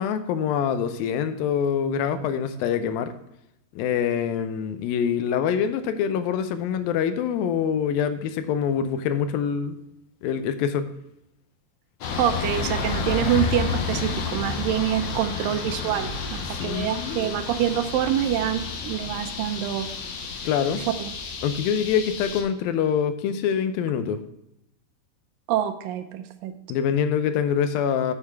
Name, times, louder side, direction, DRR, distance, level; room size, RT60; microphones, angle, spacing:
voice 1, 0.0-3.1 3.8-9.8 10.2-10.9 16.5-17.3 20.5-20.8 21.4-24.2 26.7-28.1, left 8 dB, 85° left, 10 dB, 2.5 m, -25 dB
sound 1, 12.0-22.4, left 4 dB, 65° left, 1.5 m, -30 dB
voice 2, 12.2-19.9 21.0-21.1 25.5-26.5, right 11 dB, 80° right, 9 dB, 2.3 m, -26 dB
8.7 x 6.7 x 4.5 m, 0.83 s
omnidirectional pair, 4.1 m